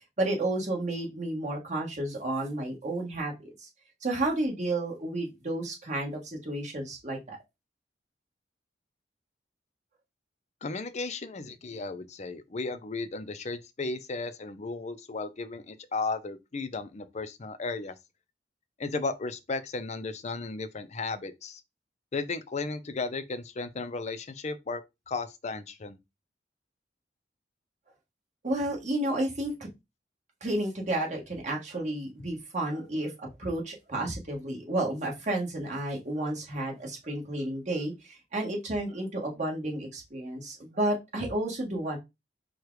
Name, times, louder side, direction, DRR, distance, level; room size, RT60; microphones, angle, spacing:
voice 1, 0.2-3.7 4.0-7.4 28.4-29.5 30.4-33.1 33.4-42.0, right 1 dB, 45° right, 1.6 m, -31 dB
voice 2, 10.6-17.9 18.8-21.6 22.1-24.8 25.1-26.0, left 3 dB, 40° left, 0.5 m, -35 dB
4.8 x 2.3 x 4.7 m
head